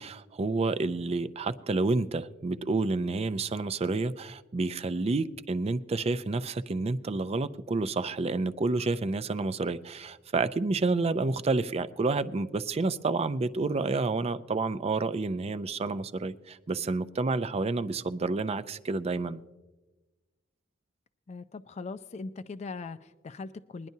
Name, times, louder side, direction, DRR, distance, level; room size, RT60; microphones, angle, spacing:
voice 1, 0.0-19.4, right 3 dB, 30° right, 13 dB, 0.4 m, -29 dB
voice 2, 21.3-23.9, left 3 dB, 35° left, 10 dB, 0.4 m, -40 dB
21.5 x 10.5 x 2.7 m, 1.2 s
head